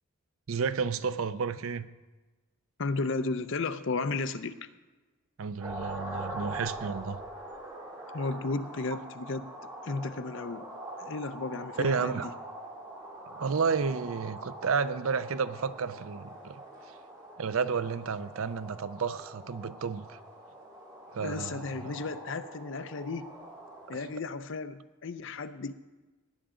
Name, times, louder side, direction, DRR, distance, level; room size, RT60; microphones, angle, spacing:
voice 1, 0.5-1.9 5.4-7.2 8.9-9.0 11.8-12.3 13.3-16.6 17.4-20.2 21.1-21.9, right 5 dB, 70° right, 14 dB, 0.5 m, -31 dB
voice 2, 2.8-4.7 8.1-9.5 9.8-10.6 11.0-12.3 21.2-23.3 23.9-25.7, left 3 dB, 55° left, 12 dB, 0.6 m, -34 dB
sound 1, 5.6-24.0, right 1 dB, 20° right, 2.7 m, -44 dB
17.5 x 10.0 x 3.8 m, 1.2 s
head